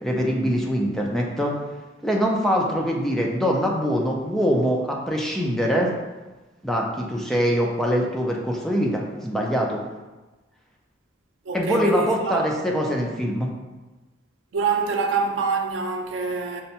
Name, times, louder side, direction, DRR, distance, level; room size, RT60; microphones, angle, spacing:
voice 1, 0.0-1.5 2.0-5.9 6.6-9.8 11.5-13.5, equal, ahead, 0.4 m, -23 dB
voice 2, 11.5-12.4 12.7-12.9 14.5-16.6, right 4 dB, 85° right, 0.5 m, -26 dB
5.2 x 2.2 x 2.8 m
head